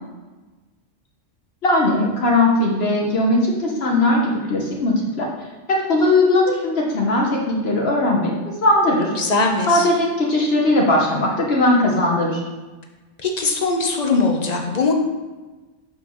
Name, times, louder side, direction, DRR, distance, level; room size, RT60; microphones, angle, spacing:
voice 1, 1.6-5.3 5.7-8.3 8.6-9.1 9.7-12.4, left 2 dB, 55° left, -2 dB, 1.2 m, -18 dB
voice 2, 9.2-9.9 13.2-14.9, left 3 dB, 40° left, 2 dB, 0.8 m, -20 dB
7.0 x 5.8 x 3.0 m, 1.2 s
omnidirectional pair, 1.3 m